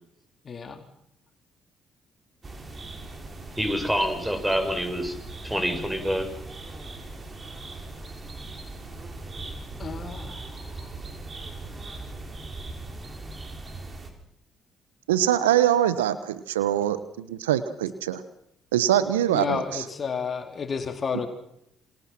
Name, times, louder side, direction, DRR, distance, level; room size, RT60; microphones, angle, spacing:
voice 1, 0.4-0.8 9.8-10.4 10.7-10.9 19.3-21.3, left 5 dB, 45° left, 6 dB, 3.8 m, -31 dB
sound 1, 2.4-14.1, right 2 dB, 35° right, 5.8 m, -39 dB
voice 2, 3.6-5.2 5.4-6.3, equal, 5° right, 6 dB, 7.4 m, -26 dB
voice 3, 15.1-18.2 18.7-19.8, right 11 dB, 85° right, 14 dB, 1.1 m, -23 dB
28.0 x 26.5 x 6.1 m, 0.79 s
hypercardioid pair, 45°, 0 cm